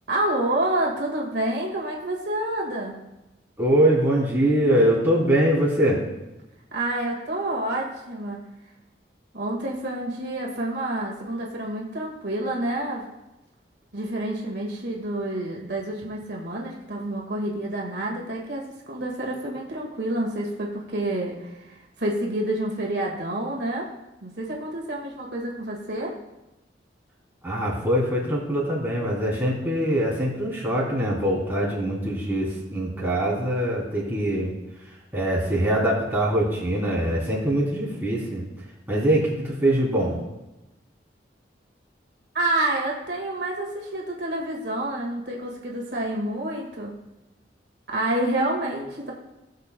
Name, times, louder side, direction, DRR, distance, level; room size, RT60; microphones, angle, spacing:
voice 1, 0.1-3.0 6.7-8.4 9.3-13.1 13.9-23.9 24.2-26.1 42.3-46.9 47.9-49.1, right 1 dB, 70° right, -1 dB, 1.8 m, -28 dB
voice 2, 3.6-6.0 27.4-34.5 35.1-38.4 38.9-40.2, right 1 dB, 10° right, -6 dB, 3.1 m, -23 dB
18.5 x 6.6 x 2.2 m, 0.97 s
head